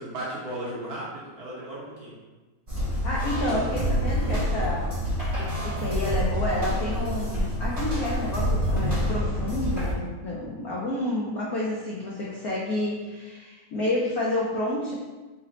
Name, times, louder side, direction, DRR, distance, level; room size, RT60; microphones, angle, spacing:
voice 1, 0.0-2.1, right 1 dB, 60° right, -7 dB, 1.0 m, -35 dB
sound 1, 2.7-9.9, equal, 25° right, 0.8 m, -27 dB
voice 2, 3.0-4.9 5.4-14.9, left 1 dB, 80° left, -5 dB, 0.8 m, -29 dB
4.0 x 2.1 x 3.9 m, 1.2 s
omnidirectional pair, 2.3 m